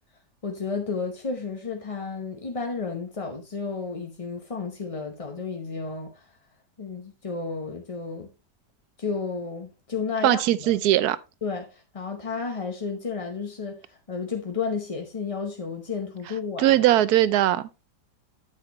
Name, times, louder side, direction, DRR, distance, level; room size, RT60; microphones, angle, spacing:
voice 1, 0.4-6.4 6.8-8.3 9.0-10.7 11.4-16.8, left 5 dB, 30° left, 0.7 m, -32 dB
voice 2, 10.2-11.2 16.6-17.7, right 13 dB, 75° right, 1.1 m, -20 dB
8.8 x 8.1 x 3.0 m
omnidirectional pair, 1.8 m